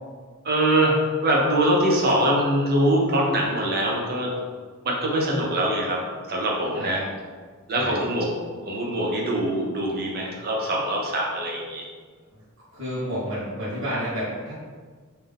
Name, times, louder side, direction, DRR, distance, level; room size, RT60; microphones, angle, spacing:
voice 1, 0.4-4.4 4.8-7.0 7.7-8.3 8.7-11.9, right 1 dB, 45° right, -1 dB, 0.8 m, -23 dB
voice 2, 12.7-14.5, equal, 65° right, -11 dB, 1.4 m, -30 dB
3.8 x 2.8 x 3.4 m, 1.5 s
head